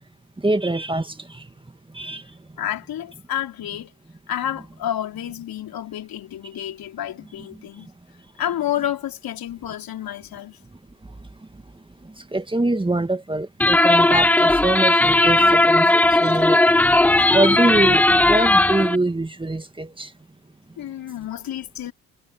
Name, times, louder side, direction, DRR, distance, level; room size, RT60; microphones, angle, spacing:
voice 1, 0.4-1.5 1.9-2.2 12.2-16.6 17.3-20.1, right 2 dB, 15° right, 2.1 m, -24 dB
voice 2, 2.6-3.9 4.3-7.9 8.4-10.6 16.2-16.3 20.8-21.9, left 11 dB, 60° left, 4.0 m, -30 dB
sound 1, 13.6-19.0, left 2 dB, 5° left, 0.3 m, -16 dB
hypercardioid pair, 60°, 39 cm